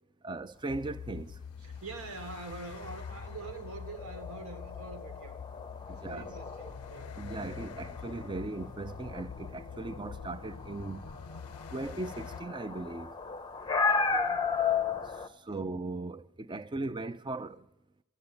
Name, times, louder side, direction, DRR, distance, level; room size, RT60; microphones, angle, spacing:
voice 1, 0.2-1.4 5.9-6.3 7.2-11.0 11.7-13.1 15.3-17.7, right 2 dB, 20° right, 0.4 m, -38 dB
sound 1, 0.7-12.4, left 6 dB, 90° left, 0.5 m, -45 dB
voice 2, 1.6-5.4 5.9-7.2 7.8-8.0 13.9-14.5, right 3 dB, 80° right, 1.8 m, -45 dB
sound 2, 2.8-15.3, left 5 dB, 20° left, 0.6 m, -35 dB
12.5 x 8.3 x 9.5 m
head